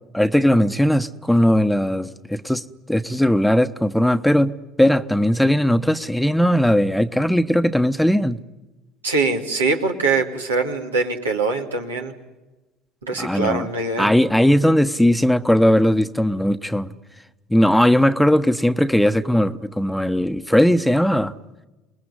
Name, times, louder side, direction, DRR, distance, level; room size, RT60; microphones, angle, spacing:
voice 1, 0.1-8.4 13.2-13.7 14.0-17.0 17.5-21.3, equal, 5° left, 10 dB, 1.1 m, -18 dB
voice 2, 9.0-12.1 13.0-14.1, right 3 dB, 90° right, 1 dB, 2.4 m, -23 dB
28.0 x 20.0 x 9.9 m, 1.1 s
hypercardioid pair, 65°, 0 cm